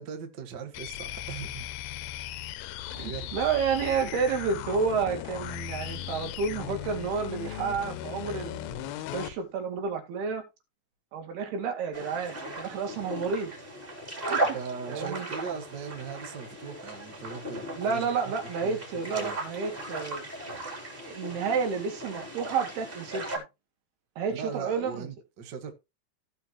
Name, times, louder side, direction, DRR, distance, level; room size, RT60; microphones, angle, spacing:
voice 1, 0.0-2.0 2.9-3.4 14.5-18.1 18.6-18.8 19.1-19.3 24.3-25.7, right 6 dB, 60° right, 1.1 m, -39 dB
sound 1, 0.7-9.4, left 13 dB, 80° left, 2.4 m, -37 dB
voice 2, 2.9-10.4 11.1-13.5 14.3-14.4 14.9-15.3 17.8-20.3 21.0-23.4 24.2-25.1, right 5 dB, 80° right, 4.1 m, -30 dB
sound 2, 11.9-23.4, right 2 dB, 15° right, 3.1 m, -36 dB
16.0 x 5.7 x 3.1 m
omnidirectional pair, 4.5 m